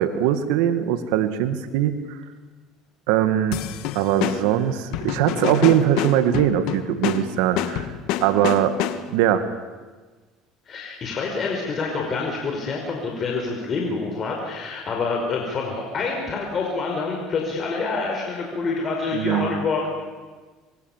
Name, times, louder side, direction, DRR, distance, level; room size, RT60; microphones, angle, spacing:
voice 1, 0.0-2.2 3.1-3.6 3.9-7.9 8.2-8.8 9.1-9.5 19.1-19.5, right 11 dB, 80° right, 9 dB, 2.0 m, -21 dB
sound 1, 3.5-9.3, left 11 dB, 70° left, 1.7 m, -28 dB
voice 2, 10.7-19.9, left 4 dB, 35° left, 0 dB, 5.2 m, -27 dB
26.0 x 23.0 x 7.5 m, 1.4 s
supercardioid pair, 110°, 0 cm